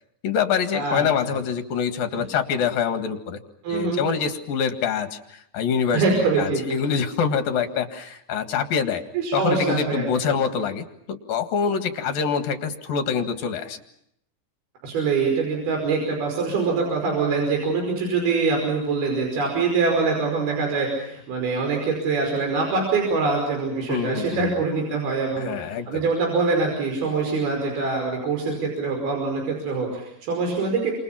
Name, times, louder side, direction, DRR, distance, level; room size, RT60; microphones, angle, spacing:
voice 1, 0.2-3.4 3.7-9.0 9.3-13.8 23.9-24.5 25.4-26.0, left 6 dB, 70° left, 7 dB, 3.5 m, -25 dB
voice 2, 3.6-4.0 5.9-6.6 9.1-10.3 14.8-30.9, right 4 dB, 75° right, 1 dB, 7.3 m, -24 dB
29.5 x 26.5 x 5.8 m, 0.73 s
omnidirectional pair, 4.4 m